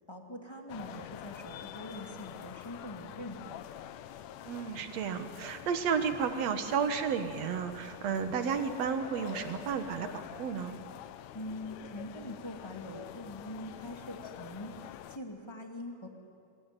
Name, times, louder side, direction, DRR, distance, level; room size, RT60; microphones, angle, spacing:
voice 1, 0.1-3.7 11.3-16.1, left 1 dB, 10° left, 1 dB, 1.8 m, -43 dB
sound 1, 0.7-15.2, left 11 dB, 90° left, 1.5 m, -46 dB
voice 2, 4.5-10.8, right 6 dB, 55° right, 8 dB, 2.1 m, -32 dB
25.0 x 21.5 x 9.2 m, 2.4 s
omnidirectional pair, 4.2 m